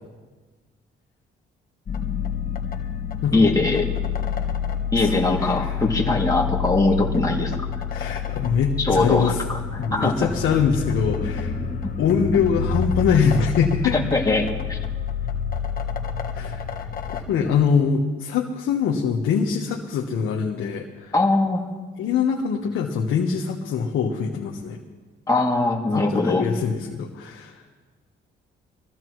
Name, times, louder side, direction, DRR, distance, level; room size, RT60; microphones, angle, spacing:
sound 1, 1.9-17.2, left 7 dB, 45° left, 1.7 m, -28 dB
voice 1, 3.3-3.9 4.9-7.5 8.8-10.1 14.1-14.8 21.1-21.6 25.3-26.4, left 2 dB, 20° left, -2 dB, 2.5 m, -21 dB
voice 2, 4.9-5.7 7.9-9.4 9.8-11.5 12.0-14.0 16.3-16.6 17.1-21.1 22.0-24.8 25.9-27.6, left 6 dB, 85° left, 0 dB, 1.3 m, -23 dB
23.5 x 15.0 x 3.1 m, 1.3 s
cardioid pair, 90°, 20 cm